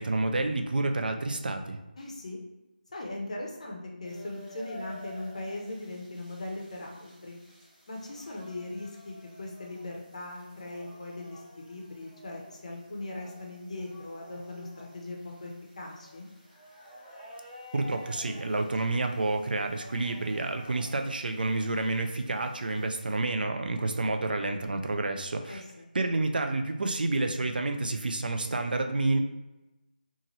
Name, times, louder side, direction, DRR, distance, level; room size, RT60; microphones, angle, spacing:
voice 1, 0.0-1.8 17.7-25.6 25.9-29.2, right 2 dB, 70° right, 5 dB, 0.3 m, -29 dB
voice 2, 2.0-2.4 2.9-7.4 7.9-16.3 25.5-25.9, left 2 dB, 45° left, 0 dB, 0.5 m, -39 dB
sound 1, 4.0-23.2, equal, 10° right, 0.5 m, -51 dB
2.8 x 2.4 x 2.6 m, 1.0 s
figure-of-eight pair, 170°, 5 cm